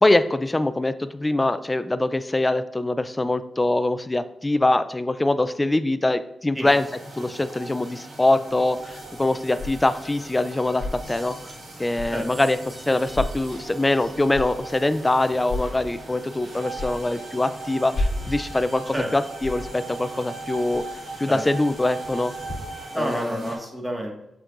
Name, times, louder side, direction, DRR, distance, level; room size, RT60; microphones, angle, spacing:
voice 1, 0.0-6.8 7.2-11.5 11.8-20.8 21.2-22.3 22.9-23.5, left 2 dB, 20° left, 13 dB, 0.4 m, -23 dB
sound 1, 6.7-23.6, right 2 dB, 60° right, 2.3 m, -39 dB
sound 2, 8.5-22.5, left 2 dB, 50° left, 2.2 m, -36 dB
voice 2, 22.9-24.2, equal, 15° right, 1 dB, 1.7 m, -29 dB
6.4 x 6.1 x 2.5 m, 0.82 s
cardioid pair, 60°, 0 cm